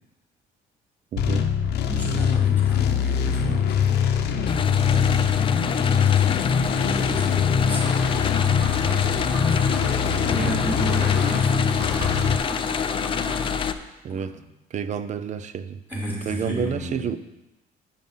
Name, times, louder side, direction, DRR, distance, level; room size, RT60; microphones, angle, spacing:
voice 1, 1.1-1.5 10.4-10.6 14.0-14.3 14.7-15.8 16.3-17.2, right 7 dB, 45° right, 13 dB, 0.6 m, -29 dB
sound 1, 1.2-12.4, left 7 dB, 75° left, 0.8 m, -22 dB
voice 2, 1.8-4.0 4.7-8.0 9.3-12.1 14.1-14.4 15.9-17.1, equal, 10° right, -4 dB, 3.8 m, -34 dB
sound 2, 4.5-13.7, left 7 dB, 30° left, 0.5 m, -28 dB
sound 3, 7.6-13.6, right 1 dB, 75° right, 3.7 m, -36 dB
9.1 x 5.7 x 5.5 m, 0.95 s
cardioid pair, 110°, 17 cm